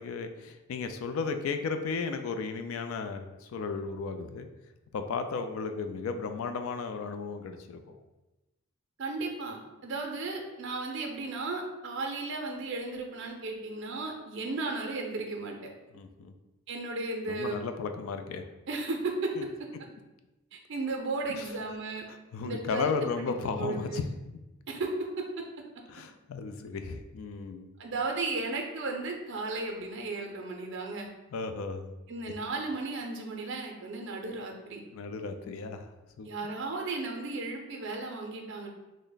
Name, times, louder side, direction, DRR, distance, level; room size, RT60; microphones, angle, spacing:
voice 1, 0.0-4.5 4.9-8.0 15.9-16.3 17.3-18.4 19.4-19.5 21.3-21.5 22.1-24.1 25.9-27.7 31.3-31.9 34.9-35.9 36.2-36.3, left 5 dB, 80° left, 7 dB, 0.3 m, -34 dB
voice 2, 9.0-15.6 16.7-17.6 18.7-19.3 20.5-22.0 22.4-24.0 24.7-24.9 25.2-25.3 27.8-31.1 32.1-34.8 36.2-38.7, right 3 dB, 60° right, 2 dB, 0.5 m, -35 dB
3.2 x 2.0 x 3.8 m, 1.1 s
head